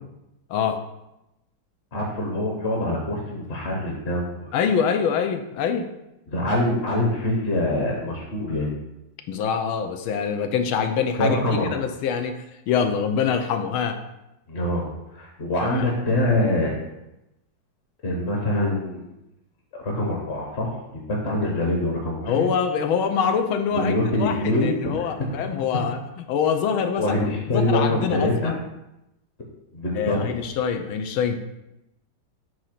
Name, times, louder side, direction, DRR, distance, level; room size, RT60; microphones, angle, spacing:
voice 1, 0.5-0.8 4.5-5.9 9.3-11.4 11.7-12.4 12.7-14.0 15.6-15.9 22.3-23.9 24.2-27.1 27.5-28.6 29.9-31.4, left 7 dB, 90° left, 7 dB, 1.5 m, -24 dB
voice 2, 1.9-4.5 6.3-8.7 11.2-11.7 14.5-14.8 15.1-16.7 18.0-19.1 19.7-22.5 23.7-25.1 27.0-28.5 29.7-30.3, left 1 dB, 40° left, -1 dB, 1.1 m, -24 dB
7.8 x 2.8 x 5.8 m, 0.91 s
omnidirectional pair, 2.2 m